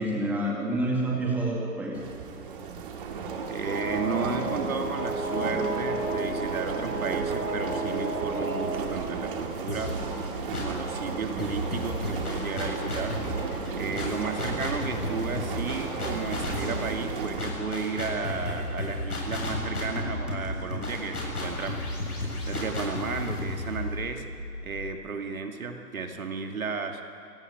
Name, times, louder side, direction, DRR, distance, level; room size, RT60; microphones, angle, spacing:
voice 1, 0.0-2.0, right 1 dB, 5° right, -2 dB, 2.1 m, -28 dB
sound 1, 1.9-17.4, right 5 dB, 30° right, 2.3 m, -35 dB
voice 2, 3.5-10.0 10.5-13.2 13.8-21.8 22.1-24.3 24.6-27.0, right 4 dB, 55° right, 5 dB, 2.5 m, -33 dB
sound 2, 3.6-8.8, right 2 dB, 75° right, 5.4 m, -32 dB
sound 3, 9.7-10.9 11.4-25.1, left 2 dB, 65° left, 7.7 m, -34 dB
26.5 x 18.0 x 8.8 m, 2.6 s
figure-of-eight pair, 140°, 48 cm